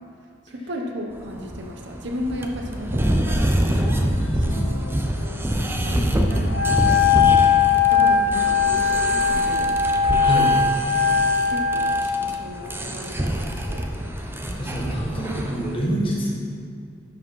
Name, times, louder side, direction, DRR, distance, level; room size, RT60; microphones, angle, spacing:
voice 1, 0.5-4.7 5.0-8.9 9.3-9.8 11.0-13.9, equal, 60° right, 2 dB, 1.0 m, -35 dB
sound 1, 1.1-15.8, right 1 dB, 10° right, 0.6 m, -26 dB
sound 2, 4.2-5.8, left 1 dB, 70° left, 1.3 m, -37 dB
Wind instrument woodwind instrument, 6.5-12.1, left 6 dB, 90° right, 1.2 m, -19 dB
voice 2, 10.2-10.5 14.5-16.3, right 1 dB, 25° left, -4 dB, 1.7 m, -26 dB
11.5 x 5.1 x 5.5 m, 2.2 s
head